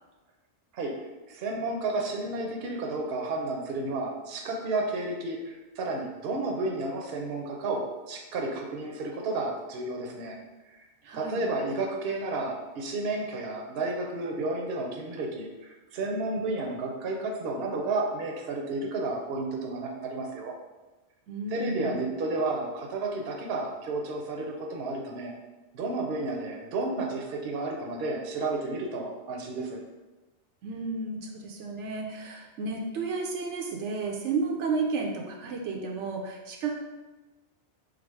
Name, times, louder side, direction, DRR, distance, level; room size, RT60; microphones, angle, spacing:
voice 1, 1.3-10.4 10.7-10.8 11.1-20.5 21.5-25.3 25.7-29.8, right 2 dB, 65° right, 0 dB, 0.8 m, -32 dB
voice 2, 11.0-11.4 21.3-22.1 30.6-36.8, right 4 dB, 85° right, 0 dB, 1.0 m, -32 dB
4.9 x 2.0 x 4.6 m, 1.2 s
omnidirectional pair, 1.2 m